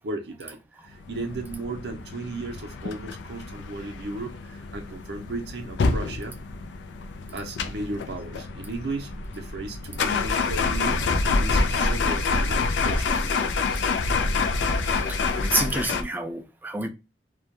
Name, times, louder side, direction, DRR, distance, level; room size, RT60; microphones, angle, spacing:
voice 1, 0.0-6.4 7.3-11.0 11.4-13.5, right 2 dB, 65° right, 0.5 m, -35 dB
sound 1, 1.1-16.0, left 4 dB, 90° left, 0.4 m, -27 dB
voice 2, 15.0-16.9, right 2 dB, 10° right, 0.3 m, -29 dB
2.2 x 2.1 x 2.9 m
head